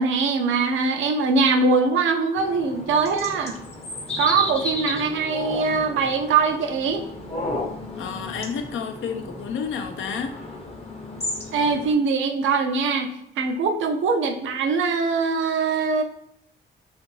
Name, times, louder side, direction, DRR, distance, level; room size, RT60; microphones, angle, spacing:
voice 1, 0.0-3.6 4.2-7.0 11.5-16.0, right 4 dB, 75° right, 5 dB, 0.5 m, -22 dB
sound 1, 2.4-11.9, left 2 dB, 30° left, 0.7 m, -33 dB
voice 2, 8.0-10.4, left 6 dB, 75° left, 5 dB, 0.5 m, -30 dB
2.5 x 2.4 x 3.0 m, 0.75 s
cardioid pair, 65°, 20 cm